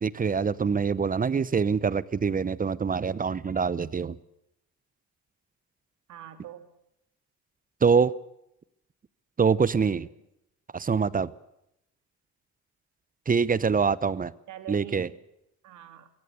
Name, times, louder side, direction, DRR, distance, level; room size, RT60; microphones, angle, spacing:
voice 1, 0.0-4.2 7.8-8.1 9.4-10.1 10.7-11.3 13.3-14.3 14.7-15.1, right 5 dB, 30° right, 19 dB, 0.8 m, -24 dB
voice 2, 6.1-6.7 9.8-10.0 14.5-15.2 15.6-16.1, right 10 dB, 80° right, 9 dB, 2.3 m, -44 dB
23.0 x 17.0 x 8.2 m, 0.83 s
cardioid pair, 90°, 30 cm